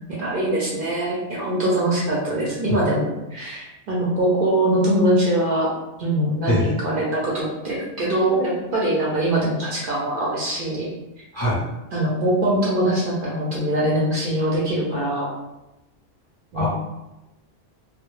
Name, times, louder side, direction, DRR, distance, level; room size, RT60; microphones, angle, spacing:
voice 1, 0.2-5.7 6.0-10.9 11.9-15.3 16.5-16.7, right 1 dB, 60° right, -5 dB, 0.6 m, -22 dB
voice 2, 6.5-6.7 11.3-11.6 16.5-16.7, left 1 dB, 40° left, -9 dB, 0.4 m, -21 dB
2.1 x 2.1 x 3.0 m, 0.96 s
omnidirectional pair, 1.2 m